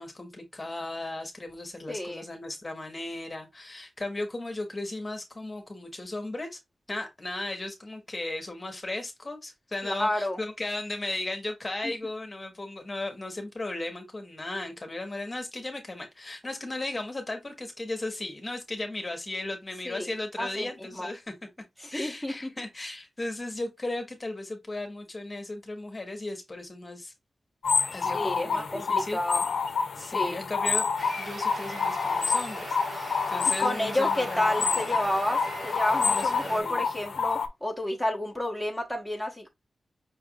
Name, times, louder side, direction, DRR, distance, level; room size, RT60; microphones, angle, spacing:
voice 1, 0.0-6.6 6.9-21.3 21.9-27.1 27.9-29.2 29.9-30.9 31.2-34.9 36.0-36.8, left 2 dB, 25° left, 1.2 m, -36 dB
voice 2, 1.9-2.2 9.8-10.4 19.8-20.1 20.4-21.1 21.8-22.5 28.1-29.4 30.0-30.4 33.4-39.5, left 1 dB, 5° right, 1.1 m, -30 dB
sound 1, 27.6-37.5, left 5 dB, 85° left, 0.6 m, -28 dB
sound 2, 31.0-36.6, right 2 dB, 60° right, 1.5 m, -39 dB
5.6 x 3.5 x 2.3 m
wide cardioid pair, 115°, 0 cm